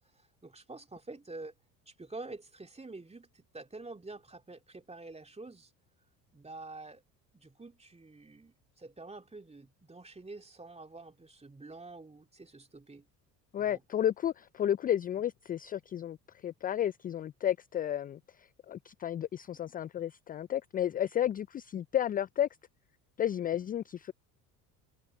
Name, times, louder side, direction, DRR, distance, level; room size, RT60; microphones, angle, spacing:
voice 1, 0.0-1.5 1.9-5.7 6.3-7.0 7.3-13.1 13.6-13.8, right 3 dB, 15° right, 2.9 m, -47 dB
voice 2, 13.5-22.5 23.2-24.1, left 10 dB, 20° left, 0.4 m, -32 dB
hypercardioid pair, 65°, 48 cm